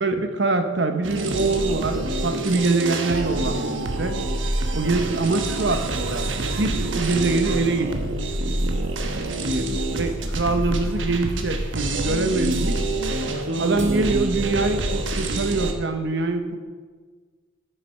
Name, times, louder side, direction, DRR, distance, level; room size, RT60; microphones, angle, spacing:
voice 1, 0.0-4.2 4.7-7.9 9.4-12.8 13.5-16.6, right 3 dB, 65° right, 7 dB, 0.9 m, -24 dB
sound 1, 1.0-15.7, right 2 dB, 85° right, 1.1 m, -26 dB
11.5 x 6.8 x 5.5 m, 1.5 s
head